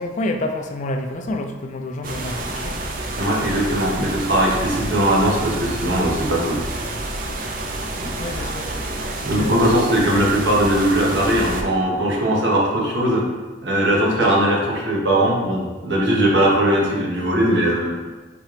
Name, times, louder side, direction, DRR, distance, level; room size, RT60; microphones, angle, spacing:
voice 1, 0.0-2.8 8.2-8.7 9.4-10.0, left 1 dB, 40° left, 5 dB, 0.3 m, -28 dB
sound 1, 2.0-11.6, right 2 dB, 45° right, 0.4 m, -29 dB
voice 2, 3.2-6.6 8.0-8.5 9.2-13.2 13.6-18.1, right 1 dB, 65° right, -3 dB, 1.1 m, -20 dB
4.2 x 3.7 x 3.2 m, 1.2 s
head